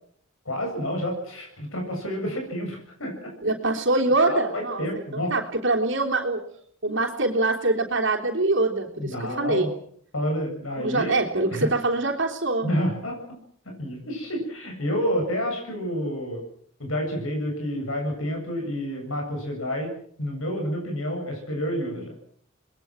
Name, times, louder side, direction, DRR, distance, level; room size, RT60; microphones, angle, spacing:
voice 1, 0.4-3.3 4.2-5.3 9.0-9.7 10.1-11.1 11.5-11.7 12.6-13.2 13.7-16.4 16.8-19.9 20.2-22.1, equal, 80° left, 2 dB, 7.6 m, -29 dB
voice 2, 3.4-4.8 5.3-6.4 6.8-9.7 10.8-12.7, right 2 dB, 65° right, 2 dB, 3.3 m, -24 dB
29.5 x 21.0 x 6.2 m, 0.63 s
head